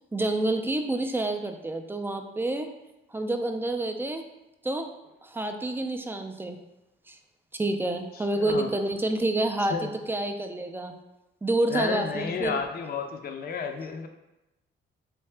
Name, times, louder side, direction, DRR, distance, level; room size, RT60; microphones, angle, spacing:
voice 1, 0.1-2.7 3.1-4.2 4.6-4.9 5.2-6.6 7.1-7.2 7.5-9.7 10.1-10.9 11.4-12.6, right 2 dB, 10° right, 5 dB, 0.3 m, -28 dB
voice 2, 8.1-8.7 9.7-9.9 11.7-14.1, left 5 dB, 50° left, 6 dB, 0.5 m, -32 dB
3.3 x 2.7 x 3.3 m, 0.96 s
cardioid pair, 90°, 20 cm